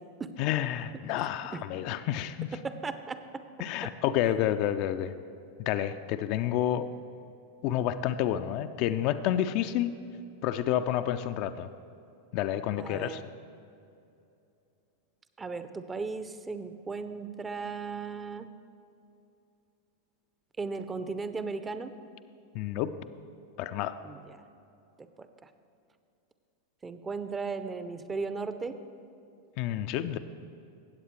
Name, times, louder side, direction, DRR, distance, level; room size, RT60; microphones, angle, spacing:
voice 1, 0.4-2.5 3.6-5.2 5.6-6.9 7.6-9.9 10.4-11.7 12.3-13.2 22.5-22.9 23.6-24.0 29.6-30.2, left 11 dB, 45° left, 10 dB, 0.3 m, -29 dB
voice 2, 2.6-3.2 4.2-4.3 12.8-13.2 15.4-18.5 20.6-21.9 24.0-24.4 25.0-25.3 26.8-28.8, right 4 dB, 15° right, 11 dB, 0.5 m, -36 dB
17.0 x 7.9 x 3.1 m, 2.7 s
figure-of-eight pair, 90°, 0 cm